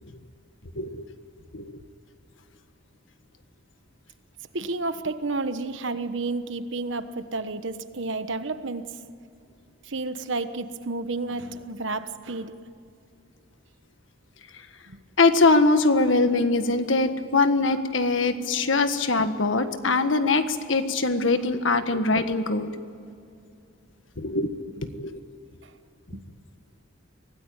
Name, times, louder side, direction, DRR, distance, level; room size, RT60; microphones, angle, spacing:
voice 1, 4.5-9.0 9.8-12.6 14.9-15.0 25.6-25.7 26.1-26.2, right 3 dB, 75° right, 11 dB, 1.2 m, -31 dB
voice 2, 15.2-22.7 24.2-24.5 24.9-25.2, left 3 dB, 80° left, 9 dB, 1.5 m, -22 dB
24.5 x 18.0 x 8.9 m, 2.4 s
head